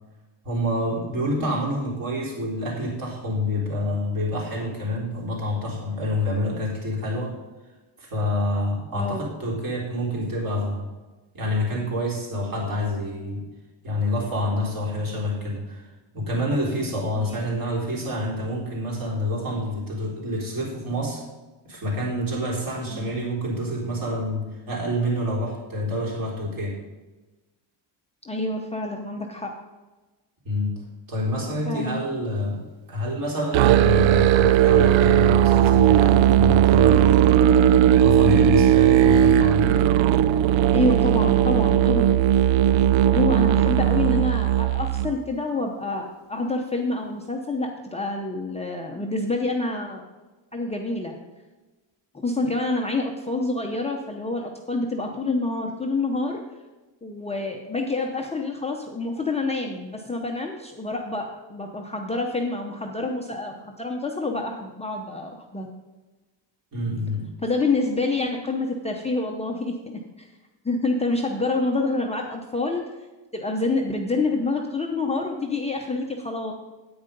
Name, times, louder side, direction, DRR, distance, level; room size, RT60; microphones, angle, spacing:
voice 1, 0.4-7.4 8.0-10.9 11.3-13.5 13.8-21.2 21.6-26.8 30.4-32.6 32.9-37.3 38.0-39.8 52.4-52.5 66.7-67.3, left 1 dB, 45° right, -3 dB, 3.7 m, -27 dB
voice 2, 8.9-9.2 17.1-17.5 22.9-23.1 28.2-29.5 31.7-32.0 40.0-40.4 40.7-42.1 43.1-50.0 50.5-51.2 52.1-56.4 57.0-65.7 67.4-70.3 70.6-72.9 73.3-76.5, left 2 dB, 15° left, 0 dB, 0.7 m, -27 dB
Musical instrument, 33.5-45.1, right 11 dB, 70° right, 0.5 m, -17 dB
9.6 x 8.7 x 5.3 m, 1.2 s
cardioid pair, 155°, 48 cm